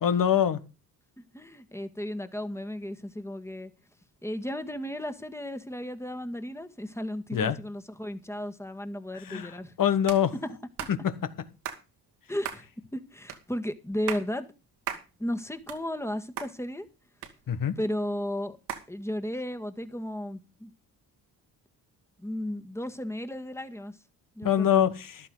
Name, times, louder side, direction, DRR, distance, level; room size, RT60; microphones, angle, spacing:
voice 1, 0.0-0.6 7.3-7.6 9.2-10.3 10.9-11.1 17.5-17.8 24.4-25.2, left 9 dB, 55° left, 1.6 m, -24 dB
voice 2, 1.2-3.7 4.2-9.7 12.3-14.5 15.2-16.9 17.8-18.6 18.9-20.7 22.2-24.0 24.4-24.9, left 1 dB, 5° left, 1.9 m, -34 dB
sound 1, 10.1-10.2 10.8-11.0 11.6-11.8 12.4-12.6 13.3-13.4 13.9-14.3 14.9-15.1 15.5-16.1 16.4-16.5 17.2-17.8 18.7-18.9, right 9 dB, 75° right, 2.4 m, -36 dB
14.5 x 11.5 x 4.0 m
supercardioid pair, 65°, 39 cm